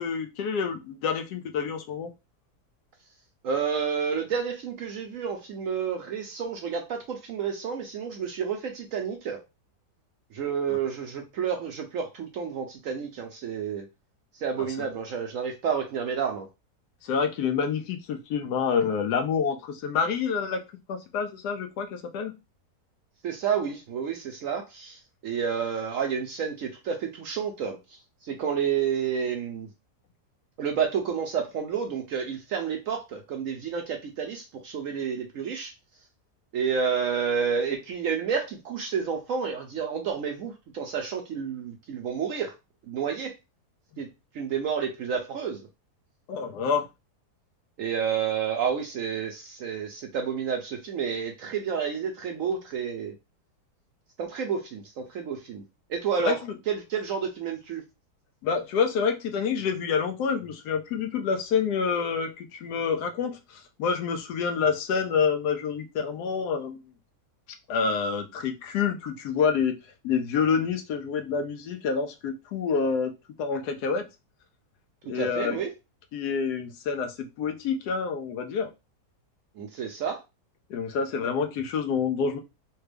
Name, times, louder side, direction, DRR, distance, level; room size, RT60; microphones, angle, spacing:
voice 1, 0.0-2.1 14.6-14.9 17.0-20.6 20.9-22.3 46.3-46.9 56.2-56.5 58.4-66.8 67.7-69.8 70.0-73.1 73.4-74.0 75.0-75.6 76.1-78.7 80.7-82.4, left 6 dB, 75° left, 6 dB, 1.1 m, -27 dB
voice 2, 3.4-9.4 10.3-13.9 14.3-16.5 23.2-29.7 30.6-35.7 36.5-42.5 42.9-43.3 44.0-44.1 44.3-45.7 47.8-53.1 54.2-55.6 55.9-57.8 75.1-75.7 79.6-80.2, right 7 dB, 70° right, 3 dB, 0.8 m, -30 dB
3.3 x 2.2 x 3.2 m, 0.25 s
omnidirectional pair, 1.8 m